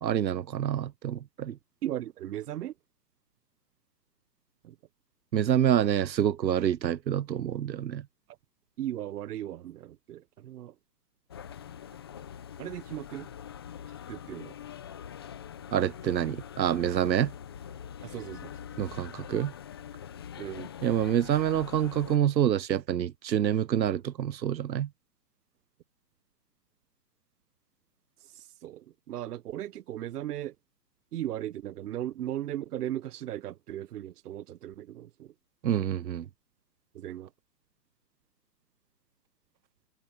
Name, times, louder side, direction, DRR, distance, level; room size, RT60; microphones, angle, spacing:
voice 1, 0.0-1.6 5.3-8.0 15.7-17.3 18.8-19.5 20.8-24.9 35.6-36.3, right 10 dB, 90° right, 0.9 m, -27 dB
voice 2, 1.8-2.7 4.6-4.8 8.8-10.7 12.6-13.3 14.1-14.5 18.0-18.8 20.4-20.7 28.4-30.5 31.1-35.3 36.9-37.3, right 12 dB, 65° right, 0.9 m, -37 dB
sound 1, 11.3-22.2, left 9 dB, 15° left, 0.4 m, -44 dB
hypercardioid pair, 145°, 50 cm